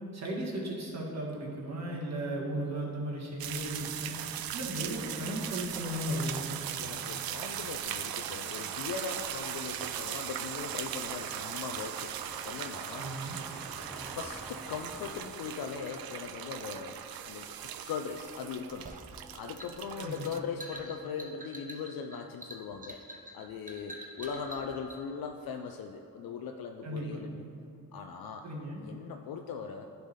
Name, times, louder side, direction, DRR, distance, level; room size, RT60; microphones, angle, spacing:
voice 1, 0.1-4.2 4.5-6.6 12.9-13.4 20.0-20.4 26.8-27.2 28.4-28.8, right 1 dB, 45° right, -3 dB, 1.5 m, -36 dB
sound 1, 3.4-20.4, right 10 dB, 70° right, 0.5 m, -39 dB
voice 2, 6.8-12.1 12.4-13.1 14.1-17.0 17.2-18.9 19.3-23.0 23.3-27.4 27.9-28.5 28.8-29.9, left 6 dB, 70° left, 4 dB, 0.5 m, -39 dB
sound 2, 7.7-15.3, equal, ahead, 0.6 m, -51 dB
sound 3, 18.9-25.0, right 1 dB, 20° right, 0.9 m, -47 dB
10.0 x 3.4 x 4.1 m, 2.7 s
supercardioid pair, 50°, 38 cm